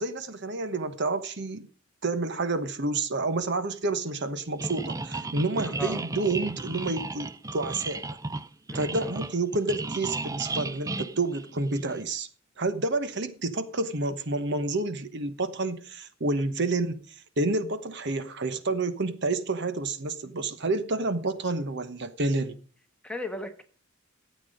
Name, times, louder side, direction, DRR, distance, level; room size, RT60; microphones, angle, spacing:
voice 1, 0.0-1.7 2.0-8.0 8.7-12.3 12.6-17.0 17.4-22.6, right 2 dB, 55° right, 1.1 m, -29 dB
sound 1, 4.6-12.0, right 2 dB, 15° right, 0.4 m, -34 dB
voice 2, 5.7-6.0 8.7-9.1 23.0-23.6, left 2 dB, 5° left, 1.4 m, -36 dB
13.5 x 8.4 x 5.1 m
head